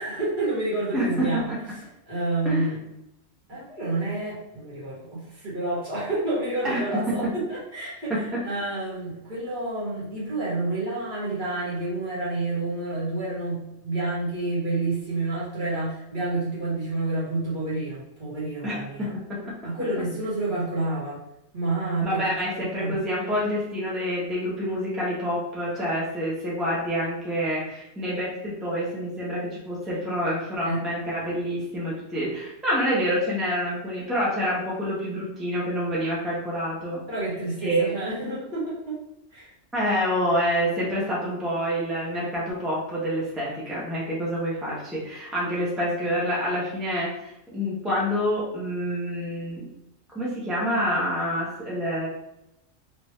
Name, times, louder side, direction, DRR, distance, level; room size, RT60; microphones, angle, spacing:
voice 1, 0.0-1.6 2.1-2.8 3.5-19.1 19.6-21.2 21.5-22.2 22.6-23.0 30.6-30.8 37.1-39.0 39.3-39.5, right 2 dB, 45° right, -8 dB, 1.4 m, -29 dB
voice 2, 0.9-1.3 2.4-2.7 6.6-6.8 18.6-19.5 22.0-37.0 37.6-37.9 39.7-49.6 50.1-52.1, equal, ahead, -7 dB, 0.8 m, -27 dB
3.3 x 2.6 x 3.2 m, 0.85 s
omnidirectional pair, 1.2 m